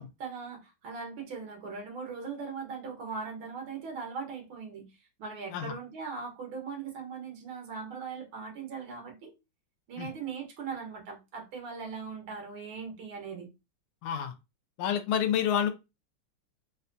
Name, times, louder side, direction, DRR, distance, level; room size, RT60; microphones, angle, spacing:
voice 1, 0.0-9.3 9.9-13.5, right 5 dB, 85° right, 2.1 m, -40 dB
voice 2, 14.0-14.3 14.8-15.7, left 9 dB, 90° left, 1.5 m, -28 dB
4.8 x 2.2 x 2.6 m
omnidirectional pair, 2.2 m